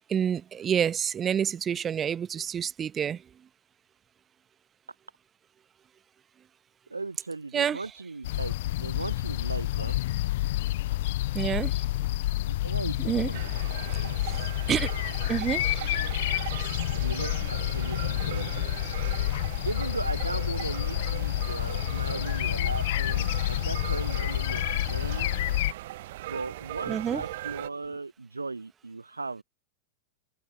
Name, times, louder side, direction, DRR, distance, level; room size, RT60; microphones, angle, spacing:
voice 1, 0.1-3.2 7.5-7.8 11.3-11.8 13.0-13.3 14.2-14.9 15.3-16.0 26.9-27.2, right 8 dB, 25° right, 1.0 m, -28 dB
voice 2, 6.9-9.9 12.5-13.4 13.9-14.2 16.9-18.5 19.6-25.3 26.3-29.4, right 3 dB, 80° right, 0.8 m, -37 dB
sound 1, 8.2-25.7, left 16 dB, 55° left, 0.3 m, -29 dB
sound 2, 13.3-27.7, right 16 dB, 55° right, 1.0 m, -39 dB
figure-of-eight pair, 90°, 0 cm